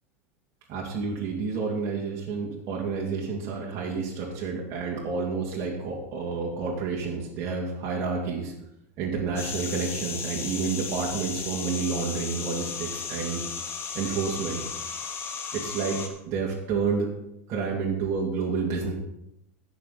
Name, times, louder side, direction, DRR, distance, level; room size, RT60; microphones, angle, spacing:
voice 1, 0.7-8.5 9.0-13.4 13.9-14.6 15.5-16.0 16.3-17.1 17.5-18.9, right 5 dB, 45° right, -4 dB, 2.4 m, -29 dB
sound 1, 9.4-16.1, left 6 dB, 35° left, 1.6 m, -35 dB
15.5 x 6.1 x 4.0 m, 0.81 s
hypercardioid pair, 105°, 8 cm